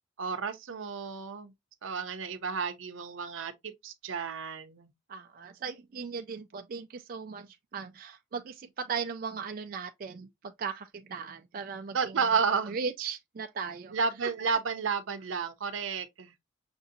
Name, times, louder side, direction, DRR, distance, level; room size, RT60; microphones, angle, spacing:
voice 1, 0.2-1.5 1.8-4.9 11.9-12.8 13.9-16.3, right 5 dB, 85° right, 0.6 m, -31 dB
voice 2, 5.1-12.1 12.7-13.9, right 5 dB, 45° right, 0.3 m, -38 dB
5.8 x 2.7 x 2.6 m
head